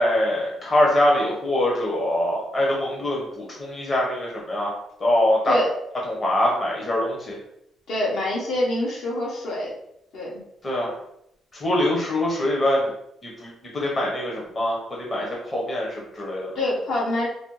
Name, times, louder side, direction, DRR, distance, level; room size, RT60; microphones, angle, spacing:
voice 1, 0.0-5.6 6.1-7.4 10.6-11.0 11.5-12.9 13.2-16.5, left 1 dB, 30° left, -3 dB, 0.9 m, -23 dB
voice 2, 7.9-9.7 10.1-10.4 16.5-17.3, left 1 dB, 70° left, -4 dB, 1.3 m, -25 dB
4.1 x 2.1 x 3.1 m, 0.76 s
cardioid pair, 105°, 0 cm